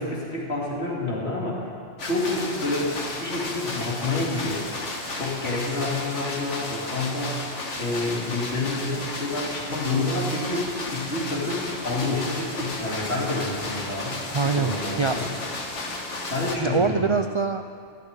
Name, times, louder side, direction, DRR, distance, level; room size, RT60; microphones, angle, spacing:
voice 1, 0.0-1.7 2.0-4.7 5.1-7.4 7.8-15.3 16.3-17.2, left 2 dB, 65° left, -4 dB, 3.4 m, -28 dB
sound 1, 2.0-16.6, left 2 dB, 85° left, 1.9 m, -33 dB
sound 2, 7.7-16.5, right 1 dB, 25° right, 3.9 m, -50 dB
voice 2, 14.3-14.7 15.0-15.2 16.6-17.6, right 5 dB, 55° right, 7 dB, 0.3 m, -23 dB
15.5 x 7.8 x 10.0 m, 2.3 s
omnidirectional pair, 1.2 m